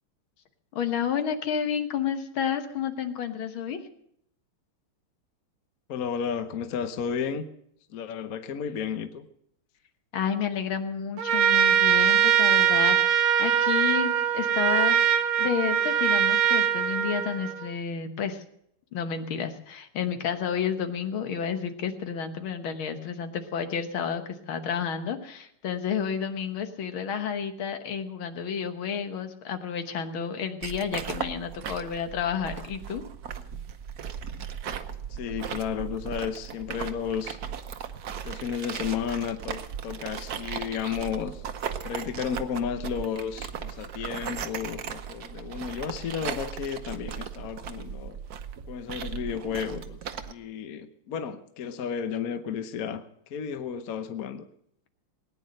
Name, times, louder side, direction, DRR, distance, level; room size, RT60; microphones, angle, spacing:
voice 1, 0.7-3.8 10.1-15.0 15.4-18.4 18.9-33.0, left 7 dB, 75° left, 8 dB, 2.0 m, -30 dB
voice 2, 5.9-7.5 7.9-9.2 35.1-37.4 38.2-41.4 41.8-48.2 48.7-50.0 50.2-53.0 53.3-54.4, left 7 dB, 55° left, 9 dB, 1.1 m, -33 dB
Trumpet, 11.2-17.7, right 9 dB, 75° right, 1.8 m, -22 dB
sound 1, 30.6-50.3, right 8 dB, 55° right, 1.1 m, -37 dB
19.0 x 9.6 x 6.4 m, 0.72 s
omnidirectional pair, 2.3 m